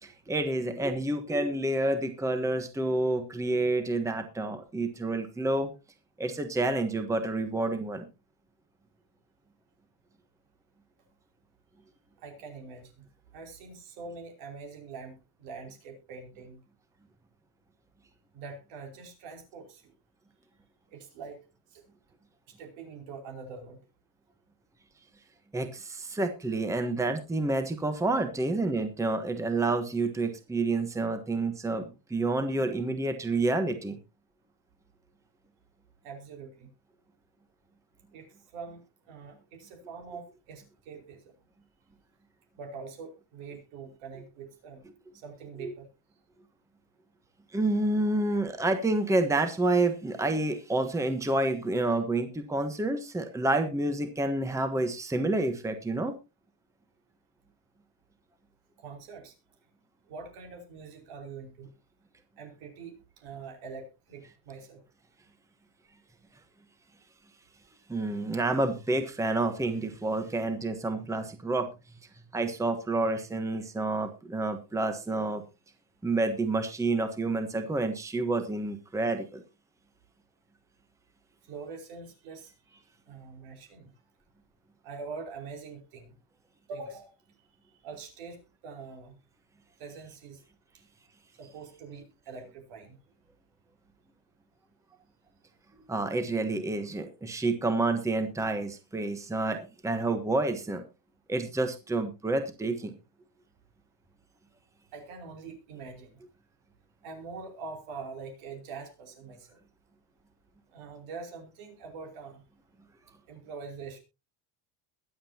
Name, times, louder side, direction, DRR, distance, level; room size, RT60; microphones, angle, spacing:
voice 1, 0.0-5.7 6.2-8.1 25.5-34.0 45.6-45.7 47.5-56.1 67.9-71.7 72.3-75.4 76.0-79.4 95.9-99.6 99.8-100.8 101.3-102.9, right 2 dB, 5° right, 8 dB, 1.2 m, -29 dB
voice 2, 12.2-13.0 13.3-16.6 18.3-19.9 20.9-21.4 21.7-21.8 22.5-23.8 28.3-28.4 36.0-36.7 38.1-41.3 42.6-44.8 45.1-45.9 48.1-48.2 58.8-59.3 60.1-61.7 62.4-64.8 81.4-82.5 83.1-83.9 84.8-86.1 86.7-87.1 87.8-89.2 89.8-90.4 91.4-93.0 104.9-106.2 107.0-109.6 110.7-112.4 113.3-114.0, right 4 dB, 80° right, 3 dB, 5.0 m, -44 dB
22.5 x 7.7 x 2.9 m, 0.28 s
cardioid pair, 140°, 47 cm